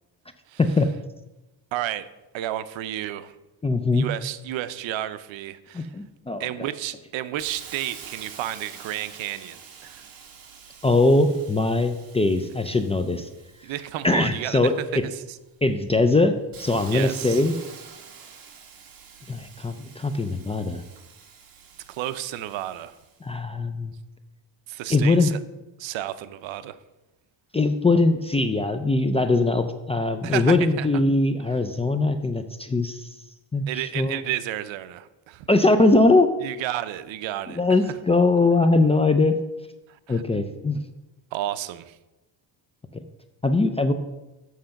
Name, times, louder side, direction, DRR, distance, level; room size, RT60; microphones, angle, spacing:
voice 1, 0.6-0.9 3.6-4.1 5.7-6.5 10.8-13.3 14.0-14.7 15.6-16.3 16.6-17.5 19.3-20.8 23.2-23.9 24.9-25.3 27.5-33.1 33.5-34.2 35.5-36.3 37.5-39.4 40.1-40.8 43.4-43.9, left 2 dB, 15° left, 8 dB, 0.3 m, -21 dB
voice 2, 1.7-2.1 2.3-3.3 3.9-6.0 6.4-10.1 13.6-15.4 16.9-17.4 21.9-22.9 24.7-25.4 25.8-26.8 30.2-30.9 33.7-35.5 36.4-37.6 39.9-40.2 41.3-42.0, right 13 dB, 75° right, 14 dB, 0.7 m, -32 dB
Hiss, 7.4-15.0 15.5-23.2, right 6 dB, 45° right, 1.5 m, -46 dB
7.6 x 6.5 x 5.7 m, 1.0 s
cardioid pair, 135°, 46 cm